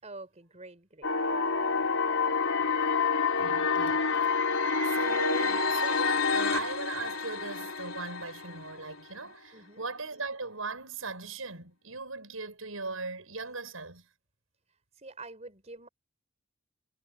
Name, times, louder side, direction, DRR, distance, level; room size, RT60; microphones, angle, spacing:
voice 1, 0.0-1.1 1.6-1.9 9.5-9.8 15.0-15.9, right 2 dB, 35° right, 4.8 m, -47 dB
sound 1, 1.0-9.0, left 5 dB, 75° left, 3.7 m, -28 dB
voice 2, 3.4-4.3 4.8-14.1, right 3 dB, 85° right, 6.3 m, -38 dB
head